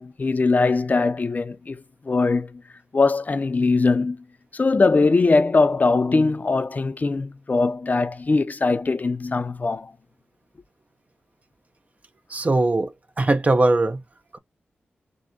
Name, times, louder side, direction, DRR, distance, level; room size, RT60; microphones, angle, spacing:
voice 1, 0.0-2.6 2.9-4.2 4.5-9.9, left 3 dB, 40° left, 0.5 m, -21 dB
voice 2, 12.3-14.0 14.3-14.4, right 2 dB, 35° right, 0.6 m, -20 dB
4.6 x 2.2 x 3.8 m
cardioid pair, 65°, 4 cm